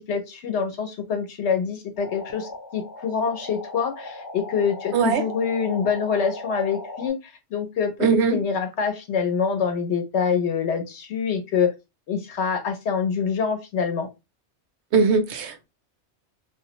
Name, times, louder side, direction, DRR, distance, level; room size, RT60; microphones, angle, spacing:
voice 1, 0.0-11.7 12.1-14.1, left 6 dB, 75° left, 1.0 m, -26 dB
sound 1, 2.0-7.1, left 2 dB, 30° left, 0.4 m, -38 dB
voice 2, 4.9-5.2 8.0-8.4 14.9-15.6, right 5 dB, 75° right, 0.9 m, -20 dB
2.4 x 2.0 x 2.8 m
omnidirectional pair, 1.2 m